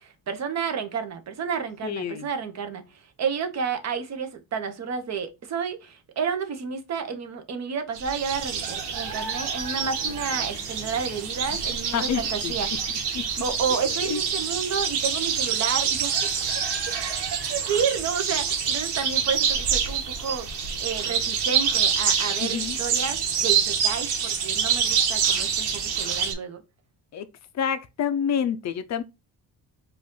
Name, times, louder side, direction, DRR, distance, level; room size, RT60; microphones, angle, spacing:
voice 1, 0.0-12.7 13.4-20.5 20.8-26.6, right 6 dB, 40° right, 0.9 m, -31 dB
voice 2, 1.8-2.3 11.5-11.6 11.9-12.5 13.1-13.3 13.7-14.2 22.4-22.8 27.1-27.3 27.5-29.0, left 8 dB, 45° left, 0.5 m, -28 dB
sound 1, 7.9-26.3, right 7 dB, 75° right, 1.4 m, -26 dB
4.8 x 2.5 x 3.7 m
cardioid pair, 165°, 40 cm